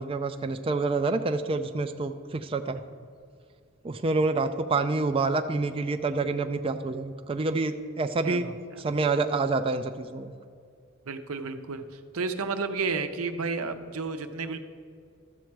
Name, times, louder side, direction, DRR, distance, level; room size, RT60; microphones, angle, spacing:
voice 1, 0.0-2.8 3.8-10.3, right 3 dB, 25° right, 7 dB, 0.4 m, -27 dB
voice 2, 8.2-8.8 11.0-14.6, right 4 dB, 90° right, 8 dB, 0.7 m, -32 dB
12.5 x 7.4 x 4.6 m, 2.2 s
head